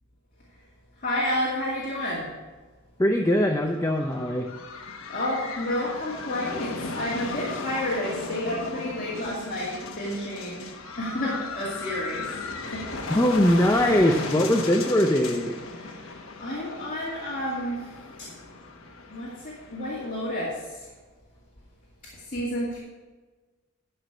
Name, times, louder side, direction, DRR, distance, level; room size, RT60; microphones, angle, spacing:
voice 1, 1.0-2.3 4.7-10.7 11.0-12.3 12.7-13.2 15.5-17.9 18.2-18.3 19.1-20.9 22.1-22.8, left 1 dB, 40° left, -6 dB, 2.2 m, -31 dB
voice 2, 3.0-4.5 13.1-15.6, left 1 dB, 15° left, 3 dB, 0.5 m, -21 dB
sound 1, 3.6-20.2, left 3 dB, 65° left, 1.2 m, -37 dB
12.0 x 5.1 x 7.2 m, 1.3 s
head